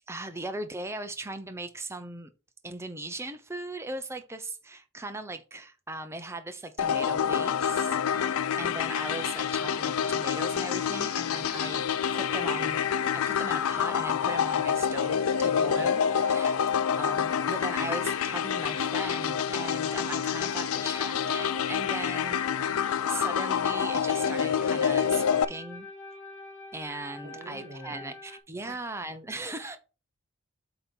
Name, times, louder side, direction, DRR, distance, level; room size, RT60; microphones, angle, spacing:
voice 1, 0.1-2.3 2.6-11.9 12.1-12.8 13.1-16.6 17.0-22.4 22.7-25.9 26.7-29.8, right 2 dB, 10° right, 0.6 m, -38 dB
sound 1, 6.8-25.4, left 8 dB, 85° left, 0.4 m, -27 dB
sound 2, 8.8-28.4, left 2 dB, 10° left, 1.3 m, -44 dB
voice 2, 15.6-16.0 27.2-28.2 28.7-29.0 29.6-29.8, right 1 dB, 40° right, 1.1 m, -47 dB
7.8 x 3.0 x 5.3 m
head